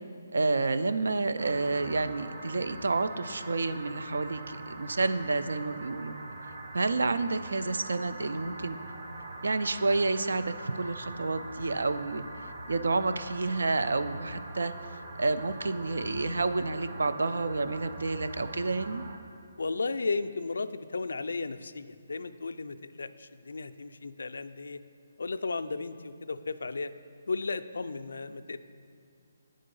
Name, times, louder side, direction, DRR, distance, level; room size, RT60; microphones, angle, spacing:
voice 1, 0.3-6.1 6.7-8.8 9.4-12.2 12.7-14.7 15.2-19.0, right 3 dB, 85° right, 11 dB, 0.4 m, -29 dB
sound 1, 1.4-19.2, right 2 dB, 35° right, 0.5 m, -43 dB
voice 2, 19.6-24.8 25.2-26.9 27.3-28.6, left 3 dB, 80° left, 11 dB, 0.3 m, -34 dB
8.8 x 3.8 x 5.3 m, 2.4 s
hypercardioid pair, 175°, 0 cm